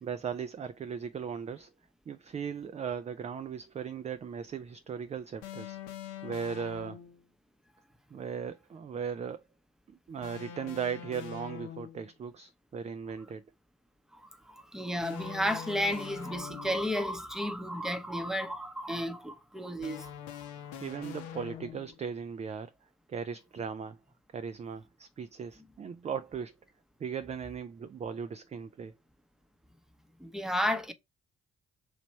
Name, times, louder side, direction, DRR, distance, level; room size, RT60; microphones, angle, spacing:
voice 1, 0.0-1.7 2.1-5.8 6.2-7.0 8.1-9.4 9.9-13.4 20.8-22.7 23.1-24.0 24.3-26.5 27.0-28.9, right 6 dB, 20° right, 0.3 m, -37 dB
sound 1, 5.4-7.2 10.2-12.1 15.0-17.0 19.8-22.0, left 10 dB, 70° left, 0.7 m, -44 dB
voice 2, 14.1-20.1 30.2-30.9, equal, ahead, 0.7 m, -33 dB
3.2 x 2.9 x 4.2 m
figure-of-eight pair, 40°, 31 cm